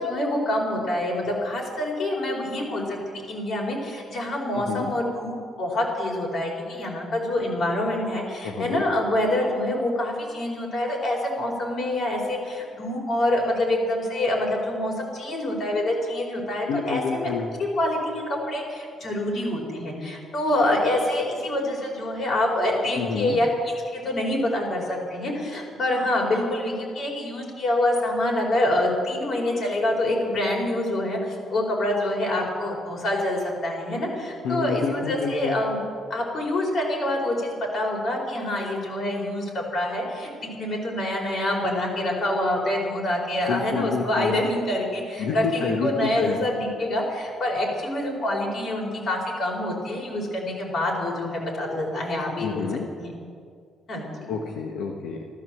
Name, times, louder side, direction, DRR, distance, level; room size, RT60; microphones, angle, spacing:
voice 1, 0.0-17.3 17.6-23.5 23.9-35.8 36.1-52.7 53.0-53.1 53.9-54.1, left 1 dB, 55° left, 0 dB, 4.9 m, -26 dB
voice 2, 4.5-4.9 8.4-8.8 16.6-17.5 23.0-23.4 34.4-35.6 43.5-44.3 45.2-46.4 52.4-52.9 54.3-55.2, left 5 dB, 90° left, 1 dB, 1.2 m, -28 dB
13.0 x 12.5 x 7.7 m, 2.2 s
cardioid pair, 90°, 0 cm